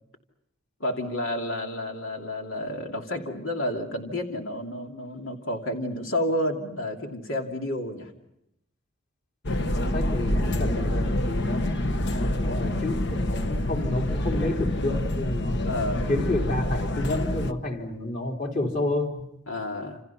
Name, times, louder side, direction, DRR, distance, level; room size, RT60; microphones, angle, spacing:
voice 1, 0.8-8.1 12.1-12.5 15.6-16.1 19.5-20.0, left 1 dB, 85° left, 2.7 m, -30 dB
sound 1, 9.4-17.5, left 1 dB, 60° left, 1.3 m, -27 dB
voice 2, 9.7-15.6 16.1-19.3, left 1 dB, 45° left, 3.8 m, -30 dB
28.5 x 28.0 x 5.7 m
head